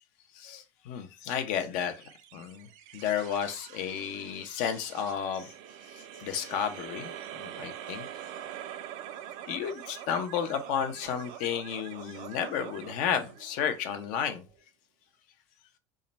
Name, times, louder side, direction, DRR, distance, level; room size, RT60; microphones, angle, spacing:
voice 1, 0.3-5.5 5.9-7.1 7.4-8.0 9.5-14.4, left 8 dB, 70° left, 0.8 m, -32 dB
sound 1, 2.0-14.6, right 11 dB, 65° right, 0.5 m, -45 dB
3.7 x 2.2 x 4.1 m
supercardioid pair, 110°, 14 cm